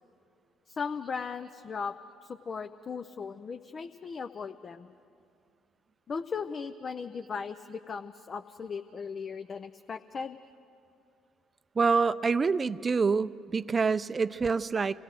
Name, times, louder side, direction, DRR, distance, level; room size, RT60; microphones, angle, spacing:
voice 1, 0.7-1.9 2.2-4.9 6.1-10.4, left 5 dB, 40° left, 7 dB, 0.6 m, -37 dB
voice 2, 11.7-15.0, right 4 dB, 35° right, 15 dB, 0.5 m, -26 dB
26.5 x 17.0 x 6.5 m, 2.5 s
hypercardioid pair, 50°, 0 cm